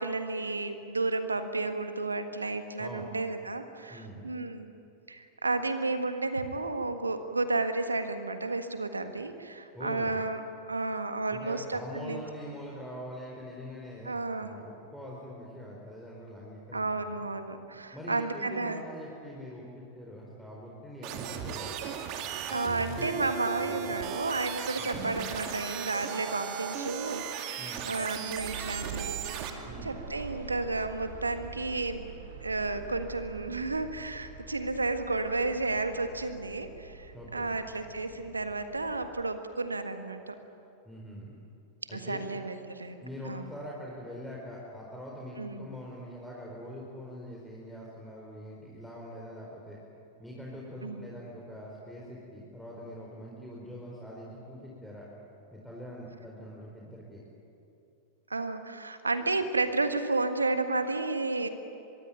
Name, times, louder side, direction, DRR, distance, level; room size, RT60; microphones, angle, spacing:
voice 1, 0.0-4.7 5.1-10.4 10.7-12.2 14.0-14.5 16.7-18.8 22.5-32.1 32.4-40.3 41.9-43.5 45.4-45.7 50.8-51.1 58.3-61.5, right 3 dB, 80° right, 8 dB, 1.6 m, -32 dB
voice 2, 3.9-4.3 9.7-10.2 11.3-17.1 17.9-21.9 22.5-23.1 23.6-24.0 24.8-25.1 27.5-27.9 29.6-29.9 37.1-37.5 40.8-41.3 41.9-42.2 43.0-49.8 50.2-55.1 55.5-57.2, equal, ahead, -4 dB, 4.4 m, -43 dB
sound 1, 21.0-29.5, right 8 dB, 40° right, 2.2 m, -36 dB
sound 2, 28.3-39.1, right 5 dB, 60° right, 3.3 m, -45 dB
25.0 x 22.0 x 9.2 m, 2.7 s
figure-of-eight pair, 90°, 0 cm